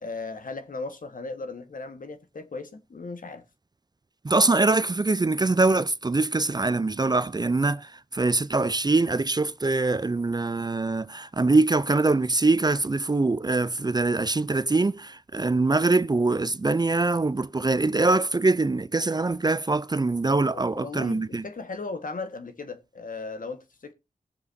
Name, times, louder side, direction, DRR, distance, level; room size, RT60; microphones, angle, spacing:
voice 1, 0.0-3.4 20.5-23.9, left 3 dB, 65° left, 1.5 m, -37 dB
voice 2, 4.2-21.4, right 3 dB, 25° right, 0.5 m, -23 dB
19.5 x 6.9 x 2.7 m
cardioid pair, 55°, 15 cm